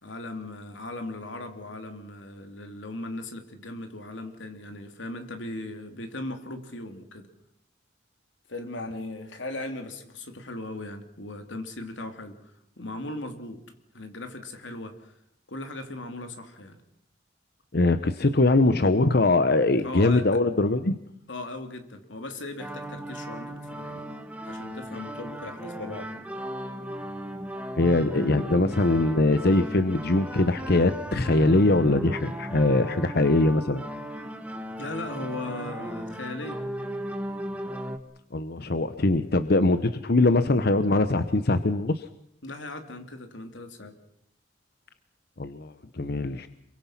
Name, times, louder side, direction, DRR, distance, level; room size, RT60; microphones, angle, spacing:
voice 1, 0.0-7.3 8.5-12.4 12.8-13.6 13.9-15.1 15.5-16.8 19.8-20.2 21.3-24.1 24.4-26.2 34.8-36.6 42.4-43.9, left 2 dB, 90° left, 6 dB, 3.0 m, -38 dB
voice 2, 17.7-21.0 27.8-33.8 38.3-42.0 45.4-46.5, left 2 dB, 60° left, 11 dB, 0.9 m, -22 dB
sound 1, 22.6-38.0, equal, 5° right, 1.5 m, -36 dB
27.5 x 23.5 x 5.9 m, 0.76 s
head